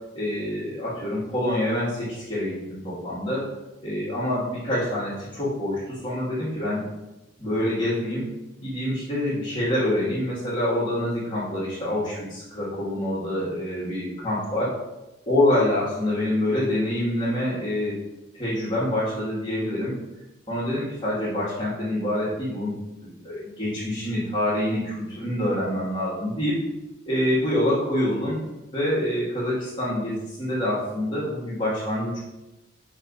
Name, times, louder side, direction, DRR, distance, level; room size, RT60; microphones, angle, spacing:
voice 1, 0.1-3.4 3.8-6.8 7.4-8.2 8.6-14.7 15.3-18.0 18.3-19.9 20.5-22.7 23.0-26.5 27.1-28.4 28.7-32.2, left 1 dB, 25° left, -13 dB, 2.1 m, -26 dB
7.3 x 4.8 x 2.7 m, 1.0 s
head